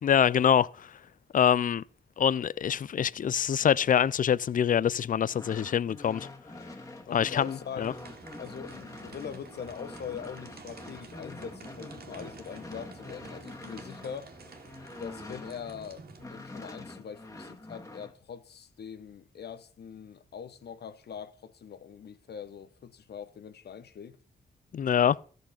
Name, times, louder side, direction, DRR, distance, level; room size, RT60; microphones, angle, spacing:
voice 1, 0.0-0.9 1.3-1.8 2.2-6.3 7.1-7.9 24.7-25.2, left 8 dB, 50° left, 0.4 m, -25 dB
sound 1, 5.3-15.9 16.2-18.1, left 2 dB, 20° left, 1.9 m, -45 dB
voice 2, 7.1-8.0 8.4-14.3 15.0-24.2, left 7 dB, 75° left, 1.0 m, -42 dB
sound 2, 7.8-16.2, right 4 dB, 65° right, 2.0 m, -50 dB
14.0 x 6.5 x 5.7 m
cardioid pair, 80°, 17 cm